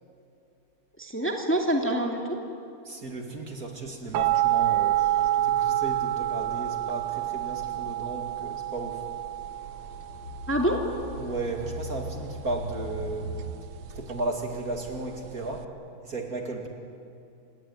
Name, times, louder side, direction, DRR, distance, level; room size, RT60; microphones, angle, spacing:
voice 1, 1.0-2.4 10.5-10.8, right 1 dB, 5° left, 2 dB, 2.1 m, -26 dB
voice 2, 2.9-9.0 11.2-13.5 14.0-15.7 16.0-16.7, right 2 dB, 45° right, 2 dB, 2.8 m, -35 dB
sound 1, 4.1-15.6, right 13 dB, 70° right, 1.4 m, -29 dB
sound 2, 5.3-5.4 6.3-6.4 8.3-8.6 9.1-13.5, equal, 60° left, 6.5 m, -40 dB
28.5 x 18.0 x 9.8 m, 2.6 s
omnidirectional pair, 2.3 m